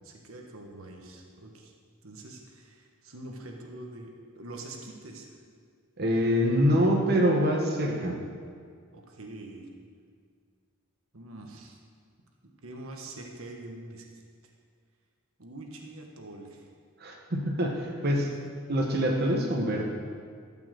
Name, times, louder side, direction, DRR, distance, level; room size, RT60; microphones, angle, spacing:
voice 1, 0.0-1.7 2.0-5.3 8.9-9.7 11.1-11.8 12.6-14.1 14.4-14.5 15.4-16.7 18.3-18.4, right 2 dB, 85° right, 1 dB, 1.4 m, -44 dB
voice 2, 6.0-8.2 17.0-18.3 18.7-19.8, equal, 50° right, 0 dB, 1.4 m, -25 dB
13.0 x 5.9 x 7.7 m, 2.1 s
head